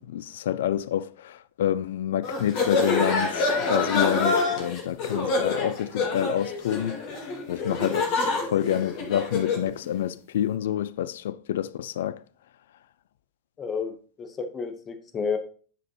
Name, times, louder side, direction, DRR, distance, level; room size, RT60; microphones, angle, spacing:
voice 1, 0.0-7.0 7.5-12.2, left 10 dB, 60° left, 0.3 m, -28 dB
sound 1, 2.2-9.7, left 3 dB, 40° left, 1.8 m, -26 dB
voice 2, 13.6-15.4, left 5 dB, 25° left, 1.0 m, -31 dB
9.9 x 5.1 x 2.8 m
figure-of-eight pair, 90°, 0 cm